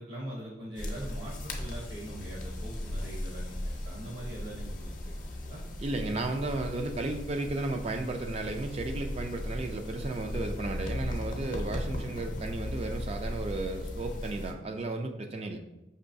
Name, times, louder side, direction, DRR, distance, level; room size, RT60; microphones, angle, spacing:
voice 1, 0.0-5.6 5.9-6.1, right 1 dB, 50° right, -3 dB, 0.8 m, -42 dB
sound 1, 0.8-14.5, left 1 dB, 45° left, 0.6 m, -37 dB
voice 2, 5.8-15.6, right 2 dB, 35° right, 5 dB, 0.3 m, -34 dB
5.4 x 3.0 x 2.6 m, 0.95 s
head